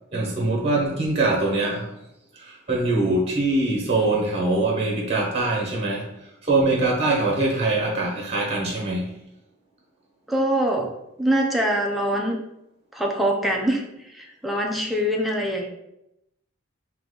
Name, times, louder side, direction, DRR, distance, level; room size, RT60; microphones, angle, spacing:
voice 1, 0.1-1.9 2.3-9.1, right 2 dB, 30° right, -2 dB, 0.9 m, -23 dB
voice 2, 10.3-10.9 11.2-12.4 12.9-13.8 14.1-15.7, right 1 dB, ahead, -1 dB, 0.5 m, -23 dB
3.8 x 2.9 x 3.7 m, 0.84 s
head